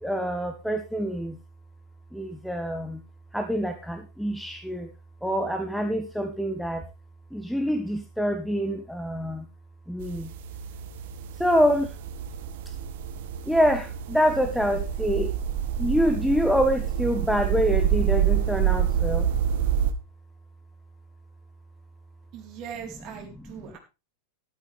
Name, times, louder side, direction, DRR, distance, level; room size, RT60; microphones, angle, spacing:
voice 1, 0.0-1.4 2.1-3.0 3.3-4.9 5.2-6.8 7.3-9.5 9.9-10.3 11.4-11.9 13.4-15.3 15.8-19.3 23.5-23.6, equal, ahead, 6 dB, 1.3 m, -26 dB
sound 1, 10.0-19.9, right 9 dB, 55° right, 1.3 m, -27 dB
voice 2, 22.3-23.8, right 8 dB, 40° right, 3 dB, 4.1 m, -40 dB
13.0 x 12.5 x 3.5 m, 0.28 s
figure-of-eight pair, 90°, 0 cm